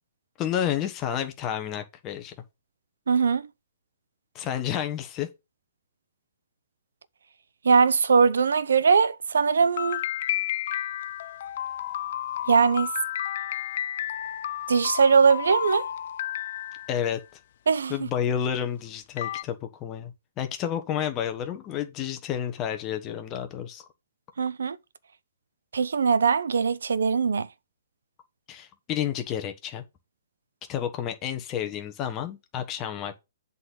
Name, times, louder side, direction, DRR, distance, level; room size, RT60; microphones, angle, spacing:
voice 1, 0.4-2.3 4.3-5.3 16.9-17.2 17.9-23.8 28.5-29.8 30.7-33.2, left 9 dB, 25° left, 1.3 m, -30 dB
voice 2, 3.1-3.5 7.6-10.0 12.5-12.9 14.7-15.9 17.7-17.9 24.4-24.8 25.7-27.5, right 5 dB, 85° right, 0.7 m, -21 dB
sound 1, 9.8-17.2 18.6-18.7 19.2-19.4, left 12 dB, 55° left, 0.5 m, -32 dB
7.8 x 4.1 x 5.6 m
hypercardioid pair, 145°, 0 cm